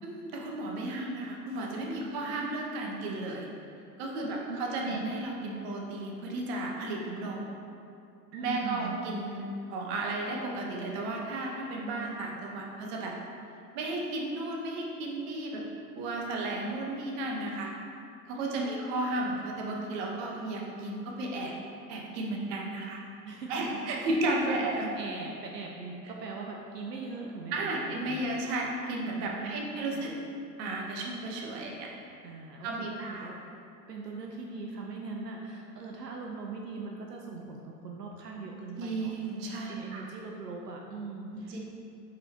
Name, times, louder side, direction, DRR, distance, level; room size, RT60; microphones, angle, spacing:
voice 1, 0.0-3.5 4.0-7.5 8.4-13.2 13.7-15.6 15.9-17.7 18.3-21.5 21.9-23.0 23.5-24.9 27.5-30.1 30.6-31.9 32.6-33.3 38.8-40.1 41.3-41.6, right 2 dB, 40° right, -1 dB, 1.2 m, -34 dB
voice 2, 2.0-2.6 4.2-5.0 8.3-9.0 18.3-18.8 23.2-24.2 24.6-24.7 25.0-28.2 29.3-30.1 32.2-33.4 33.9-39.1 39.7-41.6, right 3 dB, 70° right, 0 dB, 0.9 m, -41 dB
8.6 x 5.2 x 2.9 m, 2.6 s
figure-of-eight pair, 100°, 50 cm